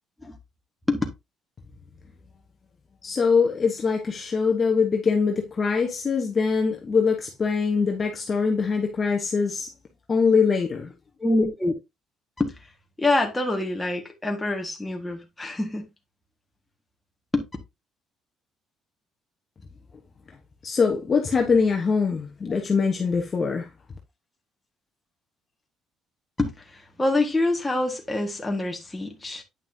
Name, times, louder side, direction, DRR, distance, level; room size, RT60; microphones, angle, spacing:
voice 1, 3.0-9.7 10.1-10.9 20.6-23.7, left 5 dB, 25° left, 1.2 m, -23 dB
voice 2, 11.2-11.7 12.4-12.6 13.0-15.9 17.3-17.4 26.4-29.4, left 2 dB, 10° left, 1.7 m, -26 dB
9.3 x 5.8 x 2.8 m
cardioid pair, 155°, 0 cm